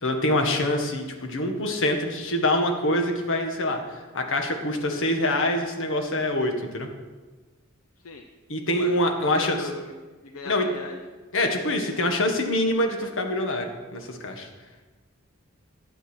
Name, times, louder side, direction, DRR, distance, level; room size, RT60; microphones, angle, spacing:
voice 1, 0.0-6.9 8.5-9.6 10.4-10.6 11.3-14.5, left 1 dB, 65° left, 4 dB, 1.6 m, -25 dB
voice 2, 8.7-9.9 10.2-11.0, left 3 dB, 80° left, 4 dB, 0.8 m, -38 dB
11.5 x 8.0 x 6.2 m, 1.3 s
head